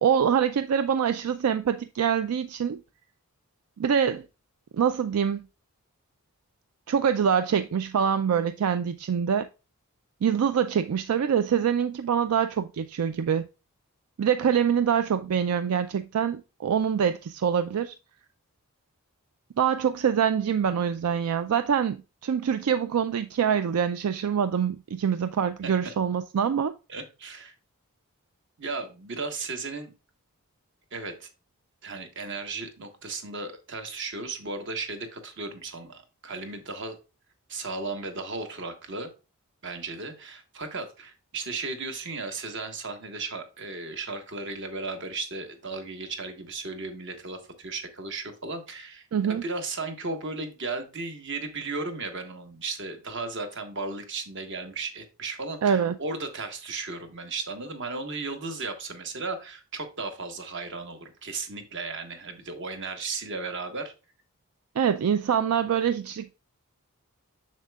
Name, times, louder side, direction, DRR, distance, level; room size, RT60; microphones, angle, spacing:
voice 1, 0.0-2.8 3.8-4.2 4.8-5.5 6.9-9.5 10.2-13.5 14.2-17.9 19.6-26.7 49.1-49.4 55.6-55.9 64.8-66.3, right 7 dB, 80° right, 0.4 m, -25 dB
voice 2, 26.9-27.5 28.6-29.9 30.9-31.3 31.8-37.0 37.5-39.1 39.6-63.9, right 3 dB, 55° right, 1.2 m, -35 dB
7.4 x 6.4 x 2.3 m
head